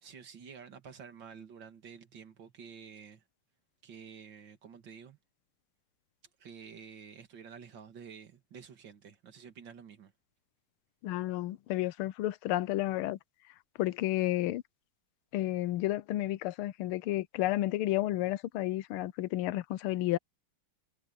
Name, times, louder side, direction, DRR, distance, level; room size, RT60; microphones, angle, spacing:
voice 1, 0.0-3.2 3.8-5.2 6.4-10.1, right 6 dB, 60° right, 2.6 m, -50 dB
voice 2, 11.0-13.2 13.8-14.6 15.3-20.2, left 15 dB, 90° left, 1.5 m, -31 dB
omnidirectional pair, 2.3 m